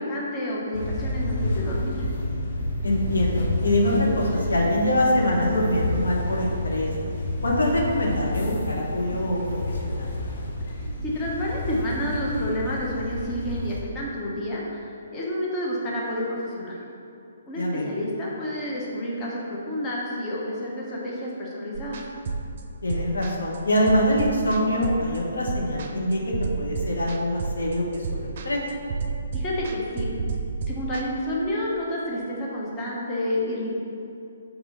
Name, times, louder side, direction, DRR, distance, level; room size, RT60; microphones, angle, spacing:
voice 1, 0.0-1.9 11.0-16.8 17.5-22.0 29.3-30.1 30.7-33.7, left 1 dB, 20° left, -5 dB, 1.1 m, -29 dB
sound 1, 0.7-13.8, left 1 dB, 55° left, 0.8 m, -29 dB
voice 2, 2.8-6.9 7.4-10.1 17.5-17.9 22.8-28.6, left 1 dB, 80° left, -2 dB, 1.2 m, -24 dB
sound 2, 21.7-31.0, right 4 dB, 50° right, 0.6 m, -31 dB
4.8 x 3.6 x 5.6 m, 2.7 s
figure-of-eight pair, 140°, 0 cm